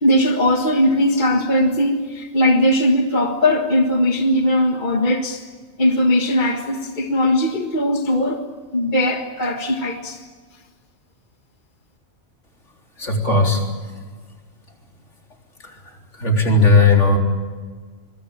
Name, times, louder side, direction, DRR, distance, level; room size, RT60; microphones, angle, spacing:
voice 1, 0.0-5.4 5.8-8.4 8.7-10.2, left 1 dB, 40° left, 3 dB, 1.9 m, -19 dB
voice 2, 13.0-13.7 16.2-17.2, left 3 dB, 75° left, 1 dB, 4.2 m, -15 dB
26.0 x 22.5 x 8.9 m, 1.5 s
omnidirectional pair, 1.3 m